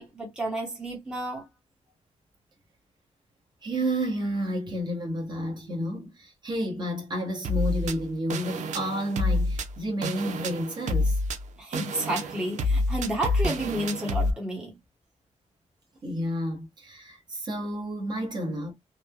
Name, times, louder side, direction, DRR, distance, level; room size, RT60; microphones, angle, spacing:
voice 1, 0.0-1.4 11.6-14.7, right 1 dB, 5° right, 0.9 m, -31 dB
voice 2, 3.6-11.2 16.0-18.7, equal, 40° right, 1.0 m, -31 dB
sound 1, 7.4-14.3, left 1 dB, 90° right, 0.5 m, -28 dB
3.0 x 2.1 x 2.3 m
wide cardioid pair, 175°, 12 cm